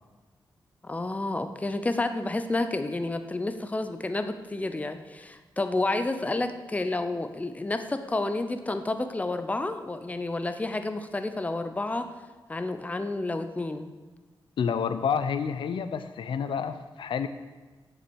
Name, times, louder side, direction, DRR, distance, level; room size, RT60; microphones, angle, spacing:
voice 1, 0.8-12.1 12.5-13.9, left 2 dB, 20° left, 8 dB, 0.7 m, -30 dB
voice 2, 14.6-17.3, left 6 dB, 90° left, 11 dB, 0.7 m, -29 dB
8.8 x 7.3 x 7.0 m, 1.3 s
wide cardioid pair, 110°, 8 cm